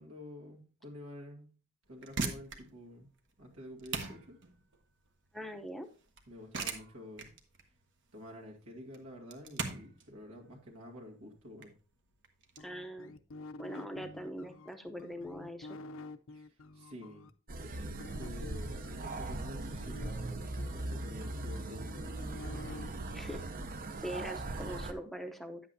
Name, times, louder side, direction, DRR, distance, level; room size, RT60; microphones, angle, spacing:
voice 1, 0.0-1.5 1.9-3.1 3.4-4.4 6.3-7.3 8.1-11.7 16.3-16.5 16.7-17.3 17.6-22.2, left 1 dB, 75° right, -1 dB, 2.1 m, -49 dB
sound 1, 1.8-12.6, right 4 dB, 55° right, 1.1 m, -42 dB
voice 2, 5.3-5.9 12.6-13.1 13.6-15.8 23.1-23.4 24.0-25.6, equal, ahead, 6 dB, 0.7 m, -42 dB
sound 2, 12.6-17.3 18.0-22.9, left 2 dB, 60° left, 0.5 m, -49 dB
sound 3, 17.5-24.9, right 2 dB, 40° right, 0.6 m, -39 dB
9.6 x 8.0 x 2.7 m, 0.37 s
head